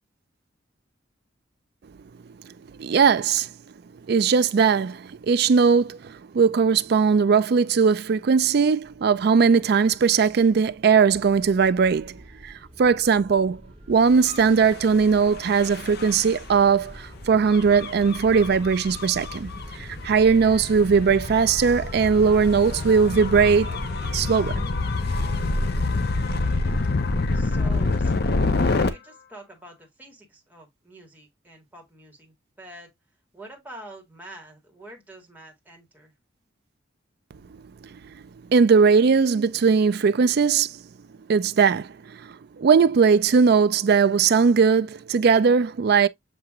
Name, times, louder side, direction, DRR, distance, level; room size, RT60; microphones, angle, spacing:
voice 1, 2.8-3.5 4.1-12.2 12.4-12.5 12.8-13.6 13.9-23.8 24.1-24.5 38.5-40.8 41.3-46.1, right 5 dB, 50° right, 0.4 m, -19 dB
sound 1, 8.8-25.9, right 1 dB, 30° right, 1.2 m, -43 dB
Gull seagull / Waves surf / Siren, 14.2-28.9, left 3 dB, 50° left, 0.6 m, -27 dB
voice 2, 27.3-28.1 28.5-32.9 33.3-36.1, right 1 dB, 10° right, 1.7 m, -46 dB
7.3 x 2.9 x 2.4 m
head